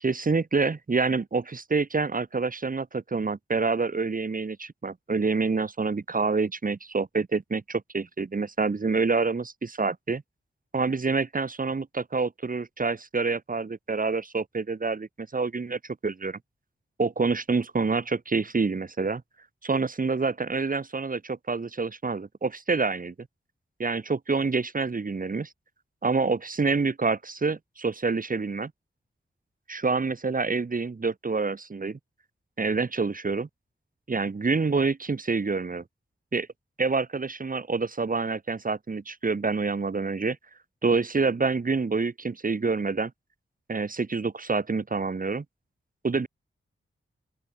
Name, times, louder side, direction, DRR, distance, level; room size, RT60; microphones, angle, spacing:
voice 1, 0.0-10.2 10.7-16.4 17.0-19.2 19.6-23.1 23.8-25.5 26.0-28.7 29.7-32.0 32.6-33.5 34.1-35.8 36.3-36.5 36.8-40.4 40.8-43.1 43.7-45.4 46.0-46.3, right 4 dB, 40° right, 1.6 m, -27 dB
open air
wide cardioid pair, 110°, 21 cm